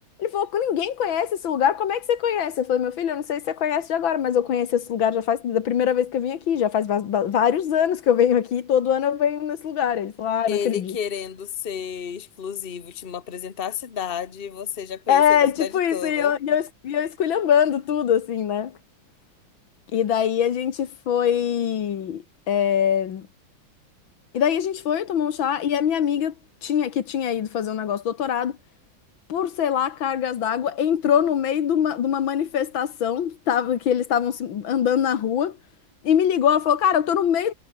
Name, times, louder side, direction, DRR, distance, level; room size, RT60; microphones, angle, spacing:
voice 1, 0.2-11.0 15.1-18.7 19.9-23.3 24.3-26.3 26.6-28.6 29.3-35.6 36.0-37.5, left 9 dB, 85° left, 2.2 m, -23 dB
voice 2, 10.5-16.3, left 8 dB, 30° left, 1.4 m, -31 dB
omnidirectional pair, 2.1 m